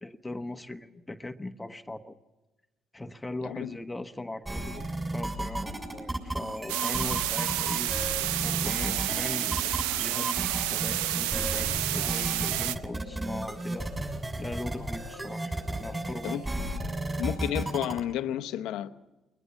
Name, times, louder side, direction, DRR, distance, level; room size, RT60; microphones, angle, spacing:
voice 1, 0.0-2.2 2.9-8.0 8.4-9.7 10.0-14.1 14.4-16.4, left 2 dB, 15° left, 1.1 m, -39 dB
sound 1, 4.5-18.0, right 1 dB, 20° right, 6.9 m, -33 dB
sound 2, 6.7-12.7, right 14 dB, 85° right, 0.7 m, -30 dB
voice 2, 17.2-18.9, left 11 dB, 75° left, 0.9 m, -31 dB
22.5 x 20.5 x 7.1 m
supercardioid pair, 65°, 0 cm